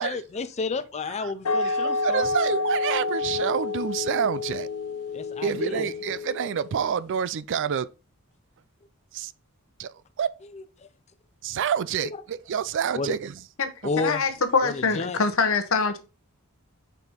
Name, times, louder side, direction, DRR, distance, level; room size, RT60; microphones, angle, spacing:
voice 1, 0.0-2.3 5.1-5.9 10.5-10.9 12.0-12.2 12.9-13.2 13.8-14.2 14.6-15.2, left 4 dB, 30° left, 0.5 m, -31 dB
sound 1, 1.4-6.9, left 3 dB, 85° left, 0.7 m, -29 dB
voice 2, 1.6-4.7 5.4-7.9 9.1-9.3 9.8-10.4 11.4-13.3, right 7 dB, 55° right, 0.4 m, -28 dB
voice 3, 14.0-16.0, left 4 dB, 65° left, 1.0 m, -24 dB
5.3 x 4.2 x 4.3 m
head